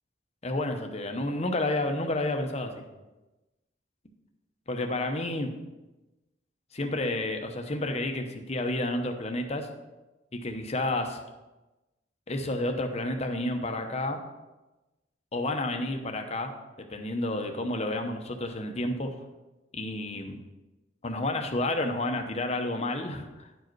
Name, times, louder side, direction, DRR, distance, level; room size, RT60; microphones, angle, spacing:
voice 1, 0.4-2.9 4.7-5.5 6.7-9.7 10.3-11.2 12.3-14.2 15.3-16.5 16.8-19.1 19.7-20.4 21.0-23.5, left 2 dB, 35° left, 4 dB, 0.9 m, -30 dB
10.0 x 4.9 x 4.6 m, 1.1 s
head